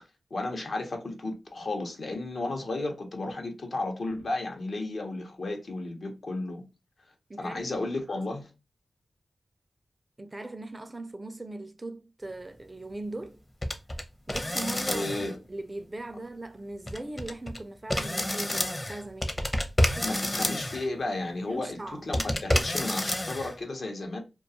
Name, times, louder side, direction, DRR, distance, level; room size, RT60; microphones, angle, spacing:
voice 1, 0.3-6.6 7.4-8.5 14.9-15.4 20.0-24.2, left 2 dB, 70° left, 0.7 m, -33 dB
voice 2, 7.3-7.7 8.1-8.2 10.2-13.4 14.3-15.1 15.5-19.4 19.8-20.2 21.5-22.1, right 2 dB, 30° right, 0.4 m, -39 dB
sound 1, 13.6-14.0 14.3-15.3 16.9-17.6 17.9-20.9 22.1-23.5, left 1 dB, 30° left, 0.6 m, -28 dB
2.3 x 2.3 x 2.6 m
cardioid pair, 45°, 0 cm